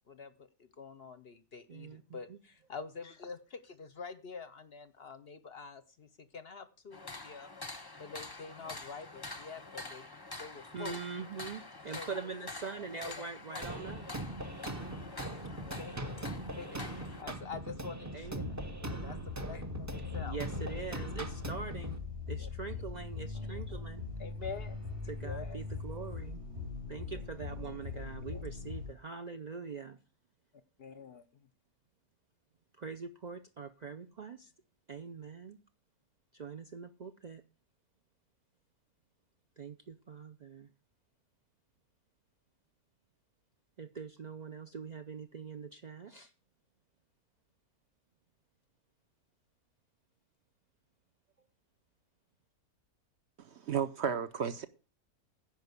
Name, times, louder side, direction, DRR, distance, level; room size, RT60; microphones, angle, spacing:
voice 1, 0.1-7.5 8.0-10.1 10.4-11.0 11.9-12.2 12.8-13.3 15.4-15.9 16.6-18.4 18.8-20.4 22.3-22.5 23.3-23.8 24.2-24.8 25.0-25.6 27.6-28.4 30.8-31.5, left 5 dB, 55° left, 0.7 m, -47 dB
voice 2, 1.7-2.4 10.7-14.0 18.1-18.6 20.2-24.0 25.1-26.4 26.9-30.0 32.8-34.5 34.9-35.6 36.3-37.4 39.6-40.7 43.8-46.3, right 5 dB, 75° right, 0.4 m, -43 dB
sound 1, 6.9-17.2, left 3 dB, 20° left, 0.7 m, -46 dB
sound 2, 13.6-22.0, right 1 dB, 20° right, 0.5 m, -41 dB
sound 3, 18.2-28.9, left 4 dB, 35° right, 3.7 m, -41 dB
voice 3, 53.4-54.7, right 7 dB, 60° right, 0.8 m, -33 dB
10.5 x 5.3 x 8.0 m
omnidirectional pair, 1.6 m